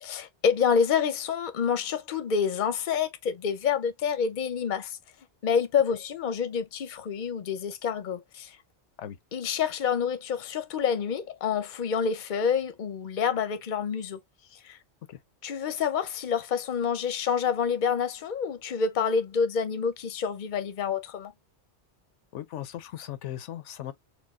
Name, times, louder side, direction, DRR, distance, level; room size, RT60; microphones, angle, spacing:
voice 1, 0.0-5.0 5.4-8.6 9.3-14.2 14.6-14.8 15.4-21.3, left 6 dB, 45° left, 0.8 m, -28 dB
voice 2, 22.3-23.9, left 12 dB, 85° left, 1.0 m, -38 dB
4.5 x 2.3 x 3.5 m
omnidirectional pair, 1.2 m